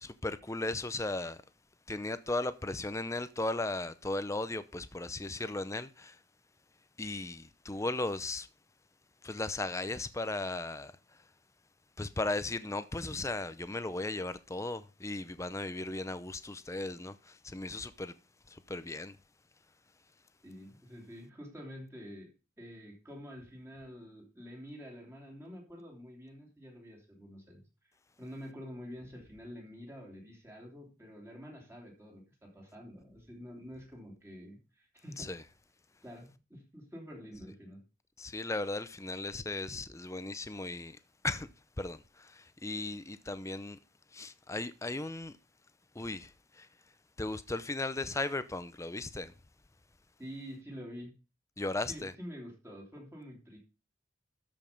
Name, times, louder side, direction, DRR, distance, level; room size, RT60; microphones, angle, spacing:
voice 1, 0.0-1.4 1.9-6.2 7.0-8.5 9.2-10.9 12.0-18.1 18.5-19.2 35.2-35.4 38.2-41.0 41.2-41.5 41.8-43.8 44.1-45.4 45.9-46.7 47.2-49.3 51.6-52.1, left 2 dB, 15° left, 0.6 m, -36 dB
voice 2, 20.4-22.3 22.6-27.7 28.2-35.3 36.0-37.8 50.2-51.1 51.9-53.6, equal, 15° right, 3.0 m, -47 dB
13.0 x 5.3 x 5.3 m
head